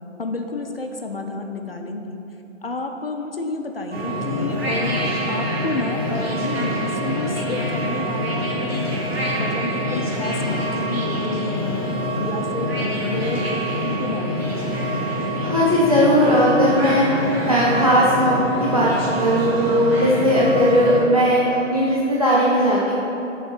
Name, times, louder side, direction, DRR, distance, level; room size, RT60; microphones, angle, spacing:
voice 1, 0.2-2.2 2.6-9.0 9.4-11.8 12.2-15.1, left 3 dB, 50° left, 4 dB, 0.4 m, -30 dB
sound 1, 3.9-21.0, equal, 50° right, 1.2 m, -25 dB
voice 2, 15.4-17.0 17.4-18.9 19.2-22.9, equal, 30° right, -7 dB, 0.5 m, -18 dB
5.1 x 3.7 x 5.8 m, 3.0 s
figure-of-eight pair, 150°, 38 cm